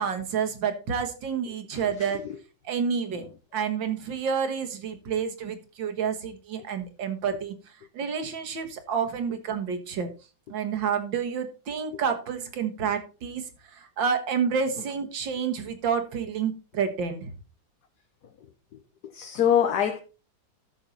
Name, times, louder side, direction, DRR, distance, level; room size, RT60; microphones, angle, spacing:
voice 1, 0.0-2.2 2.6-3.3 3.5-7.6 7.9-10.1 10.5-13.4 13.7-17.3, right 6 dB, 75° right, 2.2 m, -29 dB
voice 2, 1.7-2.4 3.1-3.3 11.9-12.0 18.7-20.0, left 9 dB, 60° left, 1.4 m, -27 dB
12.5 x 6.5 x 4.0 m
omnidirectional pair, 2.1 m